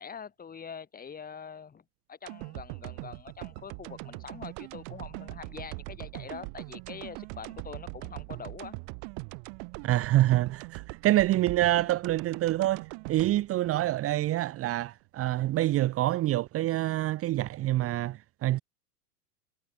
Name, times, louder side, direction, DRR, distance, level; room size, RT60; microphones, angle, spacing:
voice 1, 0.0-8.7, left 6 dB, 20° left, 4.3 m, -44 dB
sound 1, 2.3-14.5 14.9-15.0, right 40 dB or more, 50° right, 4.5 m, -41 dB
voice 2, 9.8-18.6, right 15 dB, 30° right, 1.2 m, -26 dB
hypercardioid pair, 105°, 47 cm